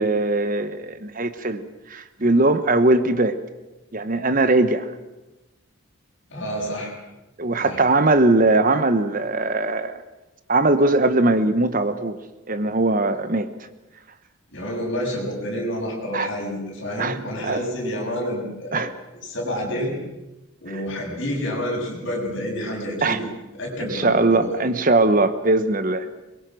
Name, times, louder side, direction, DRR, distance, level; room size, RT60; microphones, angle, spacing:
voice 1, 0.0-3.3 3.9-4.9 7.4-10.0 10.5-12.2 12.5-13.5 16.1-16.3 17.0-17.2 17.4-17.6 18.7-18.9 23.0-23.2 23.8-26.1, right 2 dB, 40° right, 11 dB, 1.0 m, -20 dB
voice 2, 6.3-6.9 7.6-7.8 14.5-18.8 19.2-20.0 20.6-23.2 23.6-24.5, equal, 55° left, -2 dB, 7.4 m, -28 dB
23.0 x 22.0 x 6.2 m, 1.0 s
head